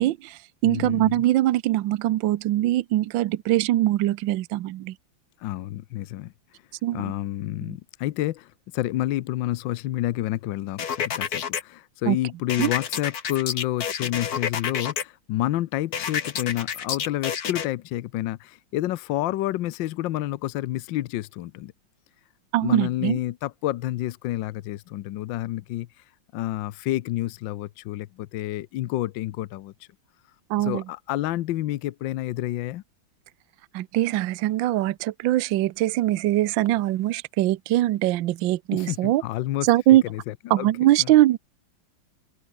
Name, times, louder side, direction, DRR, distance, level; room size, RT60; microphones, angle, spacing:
voice 1, 0.0-4.9 6.8-7.0 7.6-7.8 12.1-12.2 12.6-12.7 22.5-23.2 30.5-30.8 33.7-39.2 39.6-40.0 40.5-41.4, right 15 dB, 70° right, 1.4 m, -22 dB
voice 2, 0.6-1.2 5.4-6.3 6.9-21.7 22.6-26.0 26.3-29.7 30.6-32.8 38.7-39.7 40.1-40.7 41.0-41.1, left 15 dB, 75° left, 1.3 m, -29 dB
sound 1, 10.8-11.6 12.5-15.0 15.9-17.7, left 8 dB, 50° left, 1.7 m, -29 dB
omnidirectional pair, 2.3 m